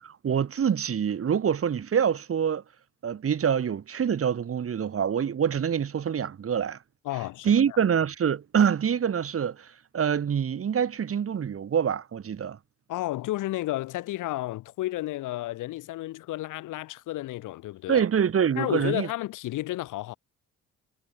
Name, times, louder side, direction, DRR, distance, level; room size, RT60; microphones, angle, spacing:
voice 1, 0.0-2.6 3.0-6.8 7.4-12.6 17.9-19.1, right 8 dB, 50° right, 2.5 m, -25 dB
voice 2, 7.0-7.8 12.9-18.0 18.6-20.1, left 16 dB, 90° left, 3.0 m, -32 dB
cardioid pair, 90°, 30 cm